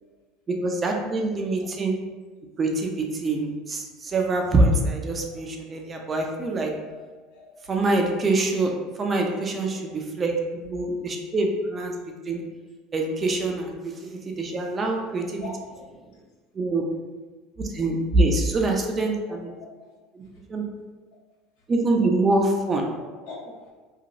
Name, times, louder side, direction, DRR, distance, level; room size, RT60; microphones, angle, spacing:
voice 1, 0.5-2.0 2.6-6.7 7.7-8.7 9.0-11.9 12.3-12.4 12.9-13.7 14.0-15.4 16.5-16.8 17.6-19.5 20.1-20.2 20.5-20.6 21.7-22.9, right 2 dB, 30° right, 2 dB, 0.4 m, -24 dB
voice 2, 15.4-15.8 19.2-19.5 19.8-19.9 23.1-23.7, left 3 dB, 70° left, -5 dB, 1.1 m, -41 dB
2.9 x 2.4 x 2.5 m, 1.3 s
supercardioid pair, 95°, 0 cm